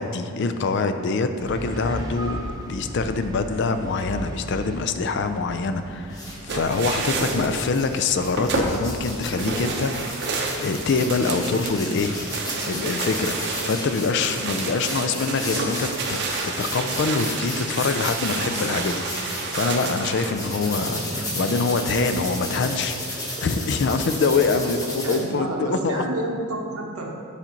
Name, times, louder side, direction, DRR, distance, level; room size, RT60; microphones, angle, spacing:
voice 1, 0.0-2.4 2.7-9.9 10.6-12.1 12.7-13.4 13.6-26.0, left 4 dB, 50° left, 9 dB, 0.4 m, -25 dB
sound 1, 1.4-10.0, right 1 dB, 15° right, 0.5 m, -37 dB
sound 2, 6.1-6.3 6.7-19.9 20.3-25.2, left 1 dB, 15° left, 1.0 m, -33 dB
sound 3, 6.5-20.3, right 3 dB, 50° right, 0.7 m, -30 dB
voice 2, 24.7-27.2, right 2 dB, 75° right, 0 dB, 1.0 m, -30 dB
7.3 x 5.7 x 3.9 m, 2.3 s
head